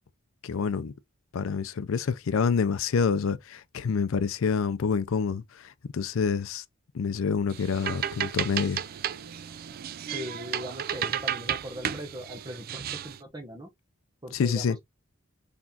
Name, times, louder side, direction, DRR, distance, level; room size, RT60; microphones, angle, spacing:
voice 1, 0.4-0.9 1.3-6.6 6.9-8.8 14.3-14.8, left 5 dB, 70° left, 0.4 m, -27 dB
sound 1, 7.5-13.2, right 9 dB, 45° right, 0.3 m, -33 dB
voice 2, 10.1-13.7 14.2-14.8, equal, 20° right, 0.9 m, -40 dB
4.1 x 3.5 x 2.8 m
head